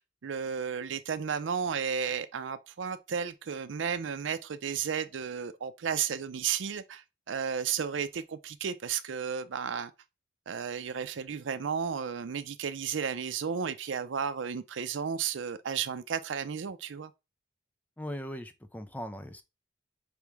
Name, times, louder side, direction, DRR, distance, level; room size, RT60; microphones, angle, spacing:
voice 1, 0.2-9.9 10.5-17.1, right 7 dB, 90° right, 0.5 m, -33 dB
voice 2, 18.0-19.4, equal, 10° left, 0.4 m, -39 dB
4.9 x 3.1 x 3.4 m
head